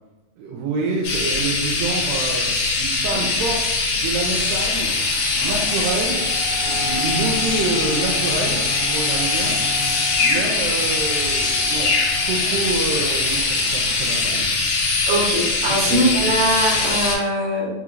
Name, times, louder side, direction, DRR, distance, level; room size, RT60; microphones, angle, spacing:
voice 1, 0.4-2.5 2.8-5.1 5.3-6.3 6.6-9.6 10.2-12.0 12.2-14.5 15.9-16.1, right 3 dB, 80° right, -2 dB, 2.1 m, -27 dB
sound 1, 1.0-17.2, left 3 dB, 70° left, 2.3 m, -22 dB
sound 2, 4.1-13.9, left 1 dB, 50° left, 1.8 m, -37 dB
sound 3, 6.5-10.2, left 2 dB, 85° left, 2.5 m, -34 dB
voice 2, 15.1-17.7, right 1 dB, 65° right, -3 dB, 1.9 m, -21 dB
5.5 x 2.9 x 2.5 m, 1.0 s
omnidirectional pair, 4.0 m